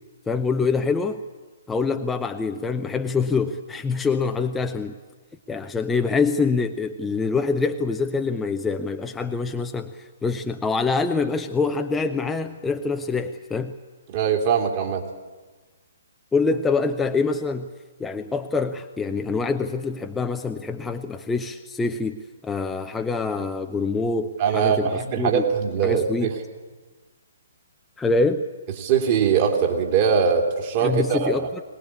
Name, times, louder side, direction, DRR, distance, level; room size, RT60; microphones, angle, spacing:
voice 1, 0.3-1.2 1.7-4.9 5.5-13.7 16.3-17.7 18.0-25.4 25.8-26.3 28.0-28.4 30.8-31.6, left 4 dB, 10° left, 5 dB, 0.7 m, -25 dB
voice 2, 14.1-15.0 24.4-26.3 28.8-31.5, right 7 dB, 35° right, 2 dB, 3.1 m, -22 dB
20.5 x 19.5 x 8.5 m, 1.3 s
figure-of-eight pair, 125°, 0 cm